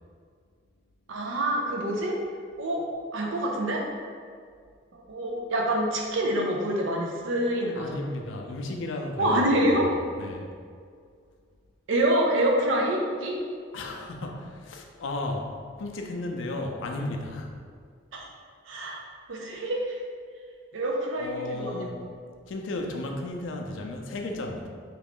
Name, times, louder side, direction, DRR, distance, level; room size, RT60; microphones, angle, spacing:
voice 1, 1.1-2.2 2.6-2.8 3.1-3.8 5.1-8.0 9.2-9.9 11.9-13.4 18.1-18.3 18.7-19.0 19.3-20.0 20.7-21.9, right 1 dB, 80° right, 0 dB, 0.5 m, -26 dB
voice 2, 7.7-10.5 13.7-17.6 21.2-22.0 22.5-24.7, left 2 dB, 75° left, 2 dB, 0.4 m, -34 dB
3.0 x 2.4 x 3.5 m, 2.1 s
head